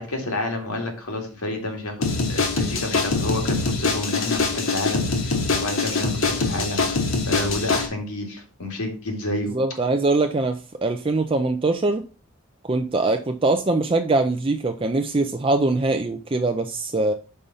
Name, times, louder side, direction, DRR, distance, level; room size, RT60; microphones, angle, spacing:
voice 1, 0.0-6.8 7.3-9.5, left 1 dB, 80° left, 2 dB, 2.2 m, -29 dB
sound 1, 2.0-7.9, left 3 dB, 60° left, 1.3 m, -24 dB
voice 2, 9.5-12.1 12.6-17.1, right 2 dB, 25° right, 6 dB, 0.4 m, -22 dB
5.5 x 4.9 x 5.5 m, 0.35 s
head